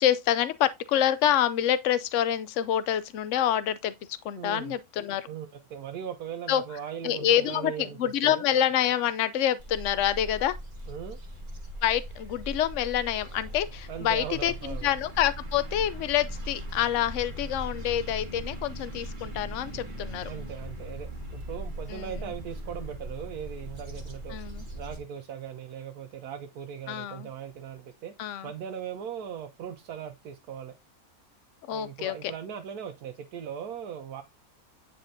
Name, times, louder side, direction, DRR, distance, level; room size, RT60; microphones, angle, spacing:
voice 1, 0.0-3.9 4.2-5.3 6.5-6.6 7.0-10.5 11.8-20.3 21.9-22.1 24.3-24.7 26.9-27.3 28.2-28.5 31.7-32.1, left 11 dB, 65° left, 0.9 m, -27 dB
voice 2, 4.4-4.8 5.3-8.4 10.9-11.2 13.9-14.9 20.3-24.4 24.7-28.1 28.4-30.7 31.7-34.2, right 8 dB, 85° right, 1.3 m, -39 dB
sound 1, 9.6-25.0, equal, 35° right, 1.5 m, -39 dB
9.3 x 4.3 x 2.7 m
omnidirectional pair, 1.6 m